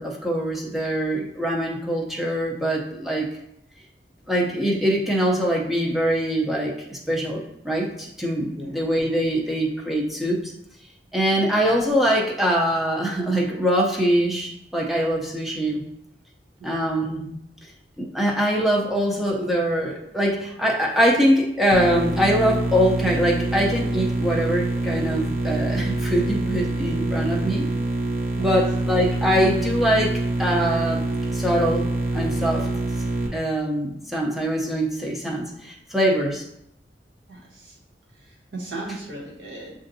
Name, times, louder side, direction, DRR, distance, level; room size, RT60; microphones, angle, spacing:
voice 1, 0.0-3.3 4.3-10.5 11.1-15.8 16.6-17.4 18.0-27.7 28.4-31.0 31.3-31.9 32.1-32.7 33.3-36.4, equal, ahead, -2 dB, 0.5 m, -23 dB
sound 1, 21.7-33.3, right 2 dB, 50° right, 0.7 m, -25 dB
voice 2, 37.3-37.7 38.5-39.7, right 2 dB, 85° right, -3 dB, 1.5 m, -36 dB
7.4 x 2.5 x 2.6 m, 0.77 s
head